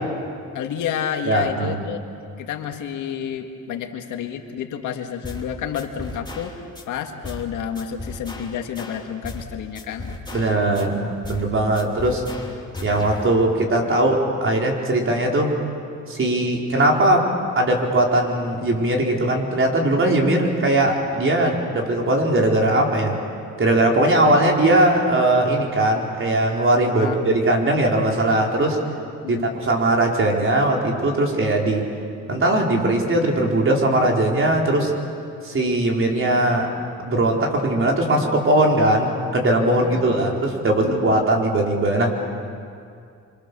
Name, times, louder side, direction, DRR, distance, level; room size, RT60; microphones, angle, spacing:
voice 1, 0.5-2.0 2.4-10.4 26.9-27.2 29.2-29.5 39.8-40.4 40.8-41.2, left 8 dB, 80° left, 4 dB, 2.0 m, -30 dB
voice 2, 1.2-1.8 10.3-12.2 12.8-15.5 16.1-17.2 17.5-23.2 23.6-28.8 29.3-31.8 32.3-34.9 35.4-36.7 37.0-42.1, right 1 dB, 45° right, 0 dB, 4.6 m, -20 dB
sound 1, 5.2-5.5 5.7-6.8 7.2-7.5 7.7-9.5 9.7-10.8 11.2-11.5 11.7-13.2, left 2 dB, 15° left, 3.2 m, -35 dB
26.0 x 25.5 x 7.0 m, 2.4 s
cardioid pair, 90°, 30 cm